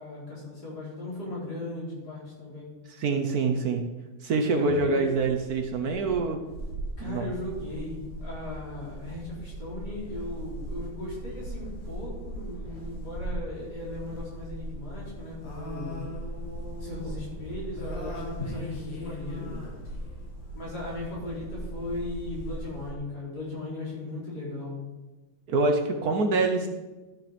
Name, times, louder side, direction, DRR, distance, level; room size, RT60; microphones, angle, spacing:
voice 1, 0.0-2.7 4.5-5.1 7.0-16.0 16.8-19.5 20.5-24.8, left 2 dB, 60° left, -6 dB, 4.6 m, -37 dB
voice 2, 3.0-3.9 4.2-6.4 7.0-7.2 25.5-26.7, right 3 dB, 60° right, 4 dB, 1.3 m, -25 dB
sound 1, 5.3-22.9, right 1 dB, 85° left, 2.6 m, -39 dB
12.0 x 6.4 x 5.0 m, 1.2 s
omnidirectional pair, 1.9 m